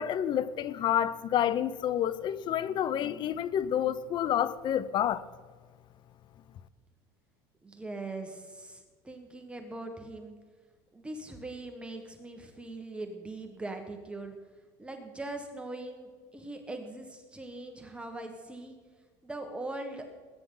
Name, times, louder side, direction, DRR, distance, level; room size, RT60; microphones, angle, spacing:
voice 1, 0.0-5.2, left 10 dB, 40° left, 0.8 m, -29 dB
voice 2, 7.6-10.4 10.9-14.4 14.8-18.7 19.2-20.1, right 2 dB, 10° right, 1.5 m, -41 dB
21.0 x 9.8 x 3.9 m
supercardioid pair, 125°, 12 cm